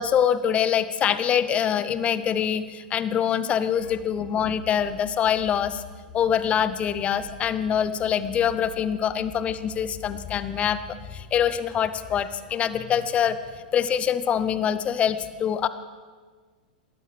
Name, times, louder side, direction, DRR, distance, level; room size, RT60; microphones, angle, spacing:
voice 1, 0.0-5.8 6.1-10.8 11.1-13.4 13.7-15.7, left 8 dB, 25° left, 14 dB, 0.7 m, -24 dB
sound 1, 3.7-11.3, left 3 dB, 50° right, 5.6 m, -46 dB
20.5 x 14.5 x 3.3 m, 1.5 s
figure-of-eight pair, 100°, 5 cm